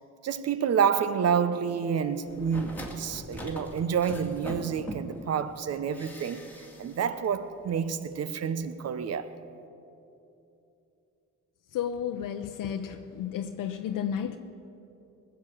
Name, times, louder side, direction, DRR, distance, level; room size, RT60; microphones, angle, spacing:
voice 1, 0.2-9.3, right 7 dB, 50° right, 0.9 m, -29 dB
sound 1, 2.3-5.3 5.9-7.0 7.2-7.3, left 1 dB, 5° left, 2.2 m, -41 dB
voice 2, 11.7-14.4, left 9 dB, 80° left, 0.7 m, -32 dB
19.5 x 7.0 x 8.6 m
cardioid pair, 100°, 32 cm